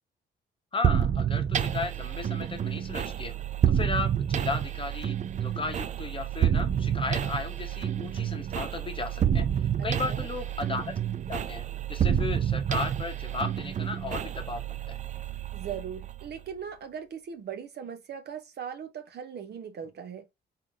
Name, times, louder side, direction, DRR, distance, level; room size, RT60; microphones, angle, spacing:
voice 1, 0.7-3.3 3.7-10.9 11.3-11.6 11.9-15.0, left 4 dB, 25° left, 0.8 m, -35 dB
sound 1, 0.8-16.5, right 9 dB, 40° right, 0.4 m, -29 dB
voice 2, 9.8-10.3 15.5-20.3, right 7 dB, 55° right, 0.9 m, -39 dB
3.7 x 2.8 x 3.7 m
cardioid pair, 90°, 20 cm